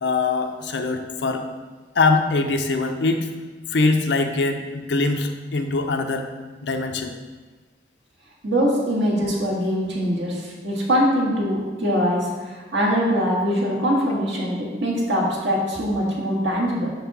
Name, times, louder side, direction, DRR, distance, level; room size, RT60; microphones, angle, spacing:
voice 1, 0.0-1.4 2.0-3.3 3.7-6.3 6.6-7.1, left 3 dB, 70° left, 5 dB, 0.6 m, -22 dB
voice 2, 8.4-16.9, equal, 85° right, -3 dB, 1.7 m, -22 dB
5.6 x 3.6 x 5.9 m, 1.4 s
head